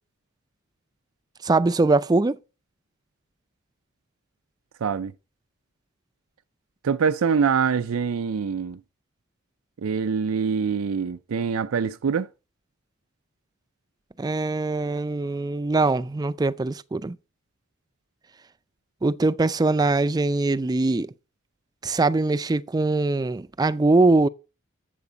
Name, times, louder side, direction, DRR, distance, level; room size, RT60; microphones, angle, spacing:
voice 1, 1.4-2.4 14.2-17.2 19.0-21.1 21.8-24.3, right 3 dB, 20° right, 0.4 m, -22 dB
voice 2, 4.8-5.1 6.8-8.8 9.8-12.3, right 6 dB, 85° right, 0.5 m, -24 dB
8.2 x 7.7 x 5.0 m
head